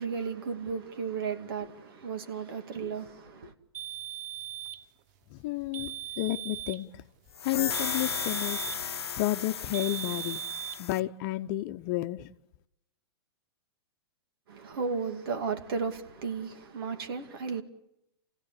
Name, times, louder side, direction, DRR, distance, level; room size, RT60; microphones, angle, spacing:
voice 1, 0.0-3.5 14.5-17.6, right 5 dB, 65° right, 2.4 m, -34 dB
sound 1, 3.7-4.9 5.7-6.9 7.7-8.9 9.7-10.8, right 12 dB, 45° right, 0.8 m, -38 dB
voice 2, 5.3-7.0 7.4-8.6 9.2-10.4 10.8-12.3, left 16 dB, 45° left, 0.9 m, -31 dB
sound 2, 7.3-11.0, left 7 dB, 85° left, 0.8 m, -35 dB
28.5 x 16.5 x 8.4 m
hypercardioid pair, 115°, 13 cm